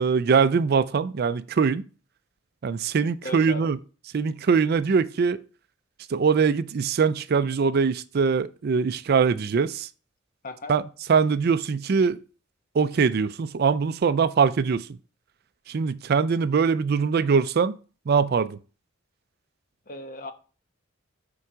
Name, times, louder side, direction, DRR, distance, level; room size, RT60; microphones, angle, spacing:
voice 1, 0.0-1.8 2.6-3.8 4.1-5.4 6.1-9.9 10.7-10.8 11.1-12.2 12.7-14.9 15.7-17.7 18.1-18.6, right 5 dB, 50° right, 0.4 m, -22 dB
voice 2, 3.2-3.7 10.4-10.7 19.9-20.3, left 2 dB, 40° left, 0.9 m, -36 dB
7.1 x 4.6 x 4.9 m
head